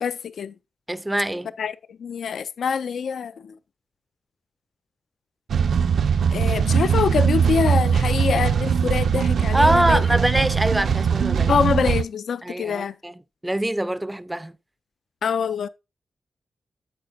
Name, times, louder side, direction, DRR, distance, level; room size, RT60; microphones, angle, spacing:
voice 1, 0.0-0.5 1.6-3.6 6.3-10.0 11.5-12.9 15.2-15.7, left 6 dB, 75° left, 0.3 m, -25 dB
voice 2, 0.9-1.5 9.5-11.5 12.4-13.1 13.4-14.5, right 1 dB, 10° right, 0.4 m, -23 dB
sound 1, 5.5-12.0, right 7 dB, 75° right, 0.5 m, -21 dB
8.8 x 8.4 x 2.6 m
wide cardioid pair, 160°, 0 cm